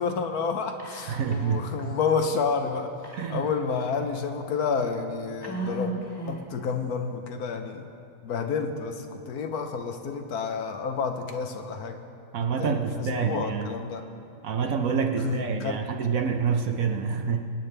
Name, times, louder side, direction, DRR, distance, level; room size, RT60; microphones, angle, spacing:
voice 1, 0.0-2.9 3.3-5.9 6.3-7.9 8.2-12.0 12.6-14.0 15.2-15.8, left 5 dB, 65° left, 6 dB, 1.2 m, -29 dB
Whispering, 0.8-1.5 1.8-1.9 3.0-3.9 4.5-4.6 5.4-6.6, right 2 dB, 15° left, 1.7 m, -36 dB
voice 2, 1.1-1.7 3.1-3.5 12.3-13.7 14.4-17.5, right 6 dB, 60° right, 5 dB, 1.0 m, -27 dB
24.0 x 9.1 x 3.3 m, 2.6 s
omnidirectional pair, 1.8 m